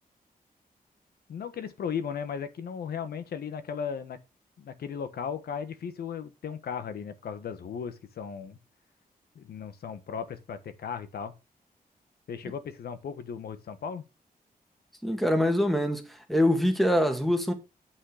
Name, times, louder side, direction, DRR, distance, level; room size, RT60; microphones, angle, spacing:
voice 1, 1.3-4.2 4.6-8.6 9.3-11.3 12.3-14.0, left 7 dB, 90° left, 1.2 m, -36 dB
voice 2, 15.0-17.5, left 1 dB, ahead, 1.7 m, -24 dB
8.8 x 5.6 x 5.0 m
wide cardioid pair, 145°, 16 cm